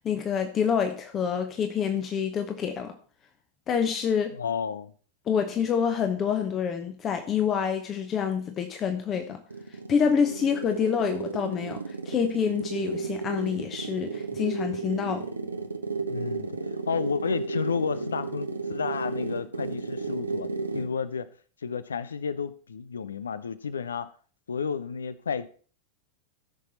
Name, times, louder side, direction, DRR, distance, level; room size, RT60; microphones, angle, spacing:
voice 1, 0.0-2.9 3.7-4.3 5.3-9.4 9.9-15.2, left 7 dB, 25° left, 1.0 m, -27 dB
voice 2, 4.3-4.9 16.1-21.3 21.6-24.1 24.5-25.5, left 6 dB, 70° left, 0.7 m, -32 dB
sound 1, 9.2-21.0, right 4 dB, 80° right, 1.0 m, -33 dB
14.5 x 6.2 x 4.3 m
figure-of-eight pair, 90°, 0 cm